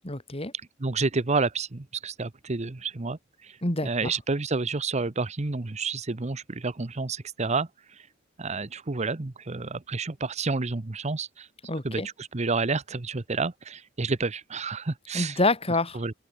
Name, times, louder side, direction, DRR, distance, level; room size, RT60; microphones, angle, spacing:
voice 1, 0.0-0.5 3.6-4.1 11.7-12.1 15.1-16.0, left 2 dB, 30° left, 4.4 m, -27 dB
voice 2, 0.8-3.6 3.8-8.1 8.4-11.5 11.8-15.4 15.9-16.1, right 3 dB, 35° right, 0.9 m, -30 dB
open air
head